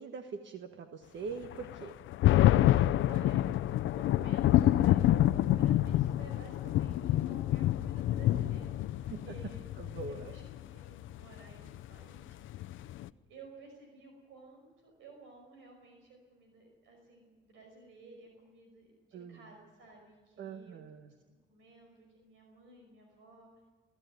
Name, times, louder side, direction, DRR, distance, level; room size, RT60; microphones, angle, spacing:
voice 1, 0.0-1.9 9.1-9.3 9.8-10.3 19.1-19.4 20.4-21.1, right 5 dB, 65° right, 6 dB, 1.4 m, -43 dB
sound 1, 1.5-13.1, left 13 dB, 80° left, 0.6 m, -27 dB
voice 2, 3.1-3.4 3.9-9.7 10.0-12.9 13.3-20.8 21.0-21.1 21.5-23.5, right 2 dB, 85° right, 2 dB, 5.4 m, -55 dB
21.5 x 14.0 x 9.3 m, 1.4 s
cardioid pair, 90°, 20 cm